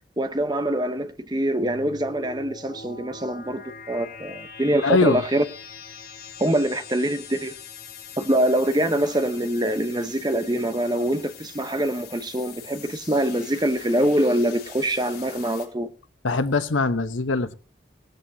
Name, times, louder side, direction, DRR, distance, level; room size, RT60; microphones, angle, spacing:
voice 1, 0.2-5.4 6.4-7.5 8.2-15.9, right 1 dB, 20° right, 0.9 m, -24 dB
sound 1, 1.6-15.7, left 6 dB, 55° left, 3.8 m, -43 dB
voice 2, 4.8-5.2 16.2-17.5, left 3 dB, 90° left, 1.0 m, -22 dB
17.5 x 13.5 x 2.8 m
head